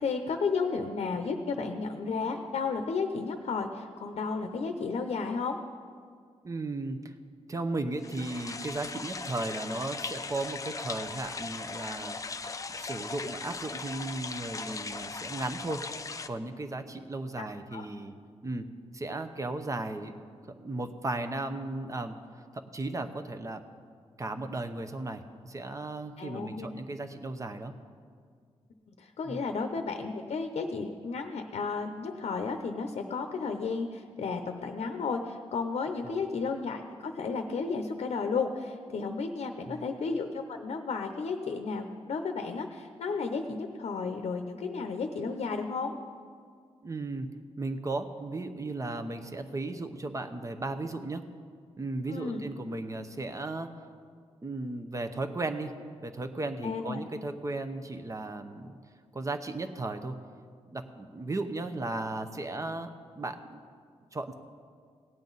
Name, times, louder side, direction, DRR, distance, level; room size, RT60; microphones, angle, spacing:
voice 1, 0.0-5.6 17.4-17.9 26.2-26.7 29.0-46.0 52.1-52.5 56.6-57.0, left 4 dB, 75° left, 6 dB, 0.7 m, -33 dB
voice 2, 6.4-7.1 7.5-12.2 12.8-15.8 16.3-18.2 18.4-20.2 20.5-23.6 24.2-27.7 29.2-29.4 35.9-36.2 39.7-39.9 46.8-47.3 47.6-51.2 51.8-53.9 54.4-55.7 56.0-58.8 59.1-60.2 60.7-62.9 63.2-63.6 64.1-64.3, right 2 dB, 30° right, 8 dB, 0.8 m, -35 dB
sound 1, 8.0-16.3, left 4 dB, 30° left, 0.5 m, -38 dB
17.0 x 9.1 x 4.0 m, 2.1 s
cardioid pair, 90°, 11 cm